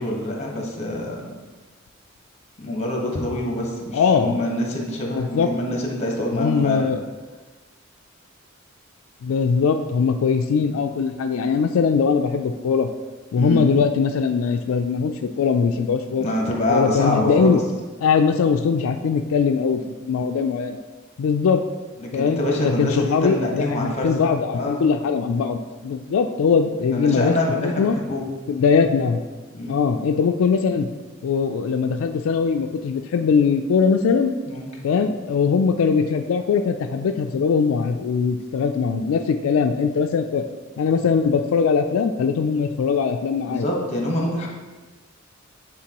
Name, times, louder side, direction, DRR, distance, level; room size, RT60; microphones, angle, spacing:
voice 1, 0.0-1.3 2.6-6.9 13.4-13.6 16.2-17.6 22.0-24.2 24.5-24.8 26.9-28.3 29.5-29.8 34.5-34.7 43.5-44.5, left 1 dB, 35° left, -1 dB, 1.2 m, -25 dB
voice 2, 3.9-4.4 5.1-5.5 6.3-7.0 9.2-12.9 13.3-16.3 16.7-17.6 18.0-20.8 21.2-21.6 22.1-27.3 27.6-28.0 28.5-29.2 29.7-30.9 31.2-34.3 34.8-40.4 40.8-43.7, left 5 dB, 85° left, 6 dB, 0.3 m, -21 dB
8.7 x 4.0 x 2.9 m, 1.3 s
head